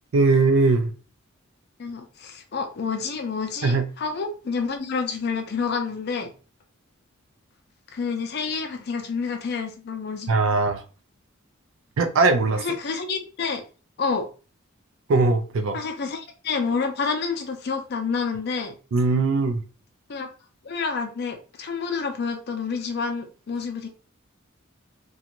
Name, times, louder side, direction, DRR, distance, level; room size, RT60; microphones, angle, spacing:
voice 1, 0.1-0.9 3.6-3.9 10.3-10.8 12.0-12.6 15.1-15.8 18.9-19.6, right 3 dB, 70° right, 0.4 m, -20 dB
voice 2, 1.8-6.3 7.9-10.3 12.5-13.6 14.0-14.3 15.7-18.8 20.1-20.3 20.6-23.9, left 5 dB, 50° left, 0.5 m, -28 dB
2.5 x 2.3 x 2.9 m
head